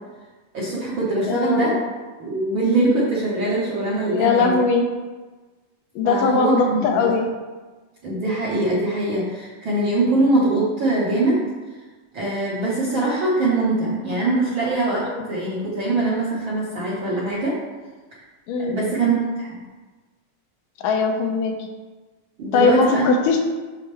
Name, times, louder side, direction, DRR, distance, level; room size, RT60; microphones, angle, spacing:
voice 1, 0.5-1.7 2.2-4.6 6.0-7.1 8.0-11.4 12.1-17.6 18.6-19.6 22.4-23.1, right 2 dB, 55° right, -7 dB, 1.4 m, -22 dB
voice 2, 1.3-1.9 4.1-4.9 6.0-7.3 15.1-15.3 18.5-18.8 20.8-21.7 22.5-23.4, left 4 dB, 85° left, 3 dB, 2.3 m, -20 dB
7.0 x 6.4 x 3.3 m, 1.3 s
omnidirectional pair, 3.8 m